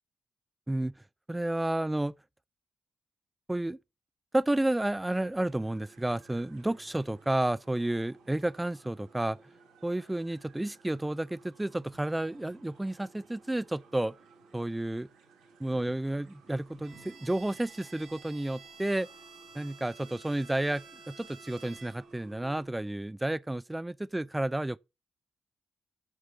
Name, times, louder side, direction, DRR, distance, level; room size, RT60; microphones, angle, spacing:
voice 1, 0.7-1.0 1.3-2.1 3.5-3.8 4.3-9.4 9.8-14.1 14.5-15.1 15.6-19.1 19.5-24.8, right 1 dB, 15° right, 0.6 m, -31 dB
sound 1, 5.4-22.7, right 4 dB, 85° right, 3.7 m, -58 dB
Bowed string instrument, 16.8-22.2, right 5 dB, 70° right, 2.8 m, -52 dB
8.3 x 6.3 x 6.9 m
hypercardioid pair, 40°, 0 cm